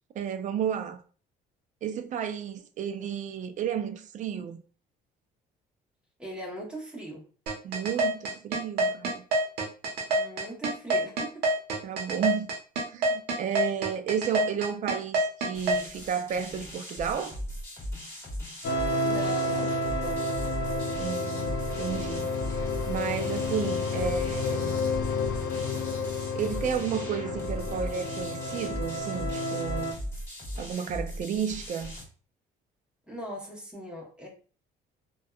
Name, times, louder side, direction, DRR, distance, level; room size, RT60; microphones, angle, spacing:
voice 1, 0.2-1.0 1.8-4.6 7.6-9.2 11.8-12.5 12.9-17.4 21.0-21.5 21.8-24.8 26.3-30.0 30.6-31.9, right 8 dB, 45° right, 0.4 m, -32 dB
voice 2, 6.2-7.2 10.1-11.5 19.0-20.2 33.1-34.3, right 1 dB, 5° right, 1.0 m, -39 dB
sound 1, 7.5-15.8, right 1 dB, 70° right, 0.8 m, -26 dB
sound 2, 15.5-32.0, equal, 15° left, 1.3 m, -39 dB
sound 3, 18.6-29.9, left 2 dB, 80° left, 0.6 m, -30 dB
2.6 x 2.2 x 2.3 m
cardioid pair, 110°, 17 cm